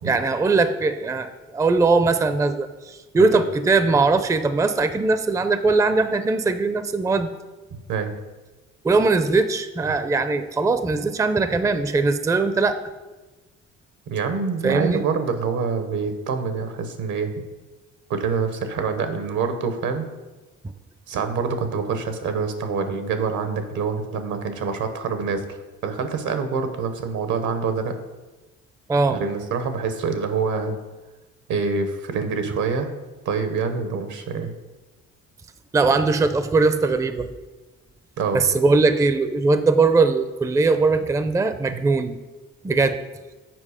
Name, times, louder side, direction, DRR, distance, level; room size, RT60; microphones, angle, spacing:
voice 1, 0.0-7.3 8.8-12.8 14.6-15.0 28.9-29.2 35.7-37.3 38.3-42.2 42.6-43.0, right 3 dB, 10° right, 10 dB, 0.4 m, -20 dB
voice 2, 14.1-17.3 18.1-20.1 21.1-27.9 29.1-30.7 31.5-32.9 33.2-34.5 38.2-38.4, right 5 dB, 75° right, 8 dB, 1.0 m, -26 dB
7.6 x 4.9 x 4.9 m, 1.2 s
cardioid pair, 90°, 30 cm